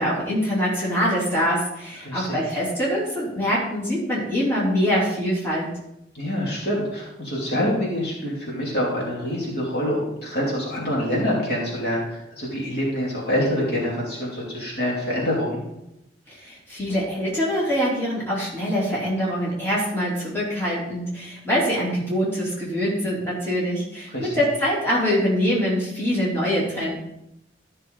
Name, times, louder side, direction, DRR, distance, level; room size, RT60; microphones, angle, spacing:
voice 1, 0.0-5.7 16.3-27.0, equal, 15° left, -7 dB, 3.3 m, -24 dB
voice 2, 2.0-2.4 6.1-15.6 24.1-24.3, equal, 60° left, -4 dB, 3.0 m, -26 dB
13.0 x 6.5 x 3.9 m, 0.85 s
head